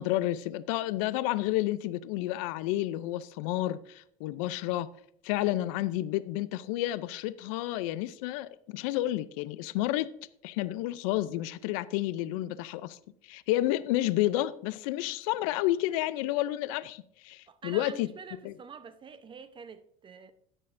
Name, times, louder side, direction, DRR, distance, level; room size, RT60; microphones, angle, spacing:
voice 1, 0.0-4.9 5.2-10.1 10.4-13.0 13.2-18.1 18.4-18.5, left 15 dB, 75° left, 0.5 m, -30 dB
voice 2, 17.5-20.3, right 5 dB, 30° right, 0.8 m, -46 dB
17.5 x 6.4 x 2.6 m
supercardioid pair, 95°, 18 cm